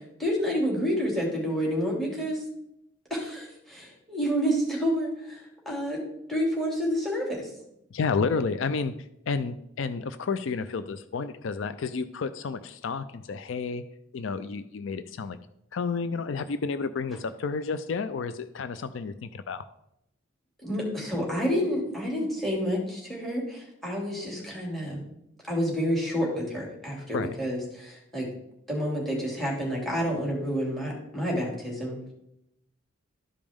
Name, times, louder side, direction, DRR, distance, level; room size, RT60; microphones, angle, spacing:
voice 1, 0.0-2.4 3.1-6.0 6.3-7.5 20.6-25.0 25.5-28.3 28.7-32.0, equal, ahead, -2 dB, 2.7 m, -29 dB
voice 2, 7.9-8.9 9.3-13.8 14.1-15.4 15.7-19.6 27.1-27.4, left 4 dB, 70° left, 12 dB, 0.4 m, -31 dB
12.5 x 5.1 x 3.6 m, 0.80 s
head